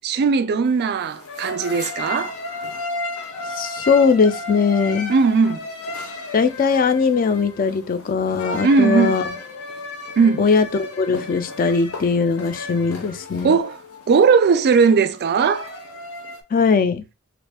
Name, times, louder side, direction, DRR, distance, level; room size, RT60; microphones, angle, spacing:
voice 1, 0.0-2.4 5.1-5.6 8.6-9.2 10.2-10.4 13.4-13.8 14.1-15.7, right 5 dB, 50° right, 0.3 m, -18 dB
sound 1, 0.7-16.4, left 2 dB, 75° left, 0.7 m, -34 dB
voice 2, 3.5-5.1 6.3-9.3 10.4-13.5 16.5-17.0, left 5 dB, 40° left, 0.4 m, -20 dB
3.1 x 2.5 x 3.4 m
head